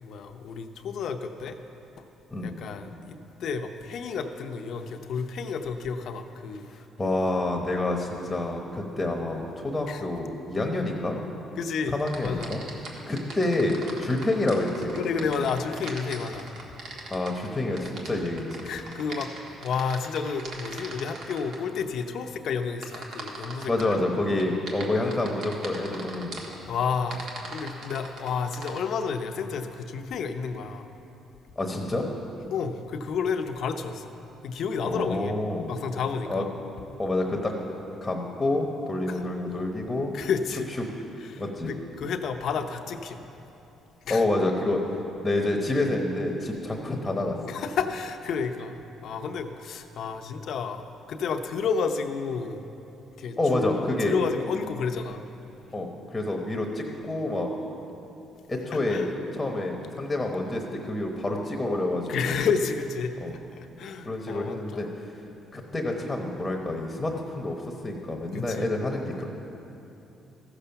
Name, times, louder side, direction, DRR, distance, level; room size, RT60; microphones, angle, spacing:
voice 1, 0.0-1.6 2.4-6.8 9.9-10.0 11.6-12.5 14.9-16.5 18.6-19.3 19.6-24.0 26.6-30.9 32.5-34.1 34.4-35.3 35.7-36.5 39.1-39.2 40.1-40.7 41.2-43.2 44.0-44.3 47.5-52.7 53.2-55.3 58.7-59.1 62.1-63.2 63.6-64.9 68.3-68.7, left 5 dB, 60° left, 7 dB, 0.7 m, -31 dB
voice 2, 7.0-11.2 11.9-12.6 13.1-14.9 15.2-15.3 17.1-18.6 23.7-26.4 31.6-32.0 34.8-35.7 36.3-36.4 37.0-37.5 38.0-40.1 40.8-40.9 41.4-41.7 44.1-44.8 45.2-47.3 53.4-54.2 55.7-57.5 58.5-62.3 63.2-63.3 64.1-64.9 65.5-67.6 67.8-69.3, left 2 dB, 15° left, 2 dB, 1.0 m, -28 dB
sound 1, 12.0-21.6 22.8-23.9 24.4-26.6 27.1-28.8, right 3 dB, 70° right, 1.5 m, -40 dB
14.5 x 7.0 x 5.8 m, 3.0 s
cardioid pair, 130°, 0 cm